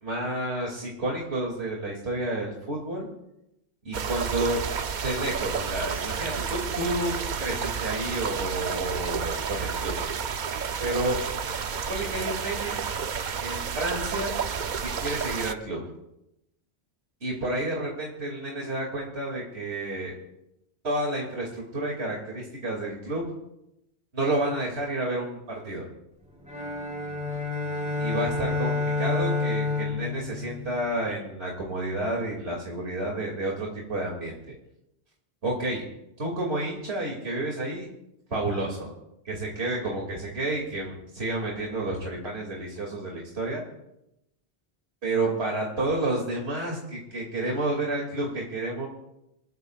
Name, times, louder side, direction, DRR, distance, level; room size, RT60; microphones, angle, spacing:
voice 1, 0.0-3.1 3.8-4.6 5.0-9.9 10.8-11.2 11.9-12.8 13.4-14.4 14.8-15.9 17.2-20.1 20.8-23.3 24.1-25.9 28.0-34.4 35.4-35.8 36.2-37.9 38.3-38.9 39.2-43.6 45.0-48.9, right 2 dB, 75° right, -2 dB, 2.9 m, -30 dB
sound 1, 3.9-15.5, right 6 dB, 50° right, 0.7 m, -31 dB
sound 2, 26.4-31.1, left 3 dB, 5° right, 3.8 m, -29 dB
28.0 x 15.0 x 2.4 m, 0.86 s
omnidirectional pair, 1.1 m